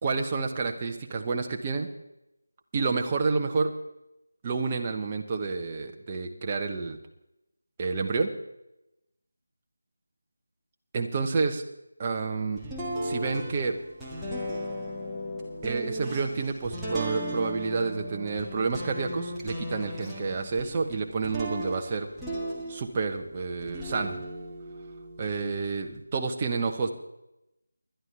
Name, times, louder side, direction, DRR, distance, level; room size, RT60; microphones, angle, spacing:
voice 1, 0.0-1.9 2.7-3.7 4.4-7.0 7.8-8.3 10.9-11.6 12.0-12.6 13.0-13.8 15.6-22.1 22.7-24.2 25.2-26.9, right 4 dB, 25° right, 3 dB, 1.1 m, -29 dB
sound 1, 12.6-23.2 23.6-25.9, equal, 5° right, 1.5 m, -36 dB
20.0 x 11.5 x 3.4 m, 0.89 s
figure-of-eight pair, 165°, 0 cm